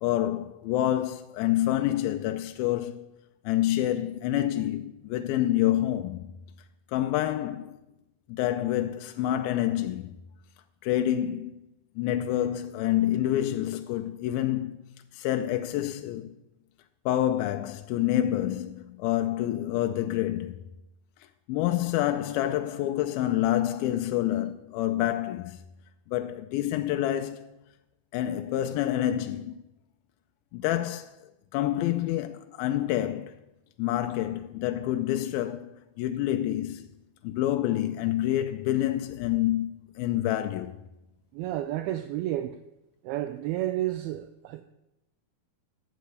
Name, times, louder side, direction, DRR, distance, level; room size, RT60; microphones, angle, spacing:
voice 1, 0.0-3.1 3.5-6.3 6.9-7.8 8.3-10.2 10.8-11.5 12.0-14.8 15.1-16.3 17.1-20.7 21.5-25.6 26.1-27.5 28.1-29.5 30.5-31.1 31.5-33.4 33.8-36.9 37.2-40.8, left 13 dB, 80° left, 2.2 m, -27 dB
voice 2, 41.3-42.6 43.0-44.6, right 14 dB, 80° right, 2.4 m, -31 dB
11.0 x 5.0 x 8.0 m
omnidirectional pair, 4.5 m